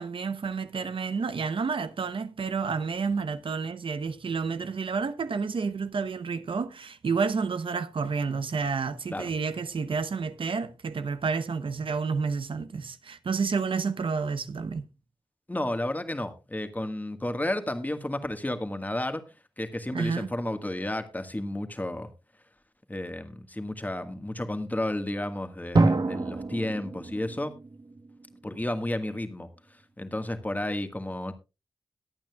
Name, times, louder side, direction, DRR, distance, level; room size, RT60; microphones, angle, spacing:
voice 1, 0.0-14.9 19.9-20.3, right 5 dB, 90° right, 0.8 m, -30 dB
voice 2, 15.5-19.2 19.6-22.1 22.9-27.5 28.4-29.5 30.0-31.3, left 1 dB, 20° left, 1.5 m, -32 dB
Drum, 25.7-28.5, right 2 dB, 50° right, 1.1 m, -26 dB
22.0 x 8.7 x 2.3 m
wide cardioid pair, 75°, 9 cm